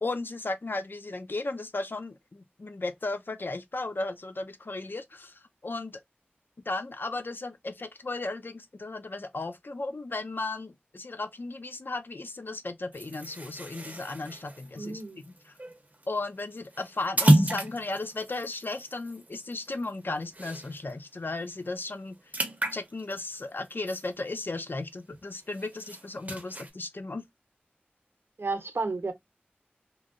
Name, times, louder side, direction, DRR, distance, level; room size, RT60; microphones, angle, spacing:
voice 1, 0.0-6.0 6.7-15.0 15.3-15.5 16.1-22.2 22.7-27.3, left 2 dB, 60° left, 0.5 m, -35 dB
sound 1, 12.9-20.9 21.3-21.5 21.8-24.7 25.1-26.7, right 1 dB, 40° right, 0.8 m, -30 dB
voice 2, 14.8-15.2 28.4-29.1, right 3 dB, 85° right, 0.6 m, -32 dB
3.0 x 2.6 x 2.4 m
wide cardioid pair, 60°, 4 cm